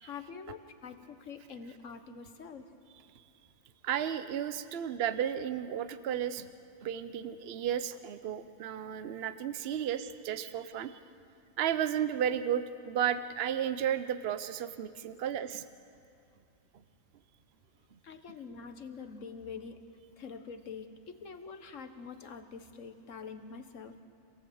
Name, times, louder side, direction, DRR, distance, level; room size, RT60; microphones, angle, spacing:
voice 1, 0.0-2.8 18.0-19.8 20.2-24.0, left 5 dB, 80° left, 8 dB, 1.6 m, -45 dB
voice 2, 3.8-6.5 6.8-11.0 11.6-15.6, right 9 dB, 55° right, 11 dB, 0.9 m, -33 dB
26.0 x 17.5 x 7.8 m, 2.4 s
omnidirectional pair, 1.3 m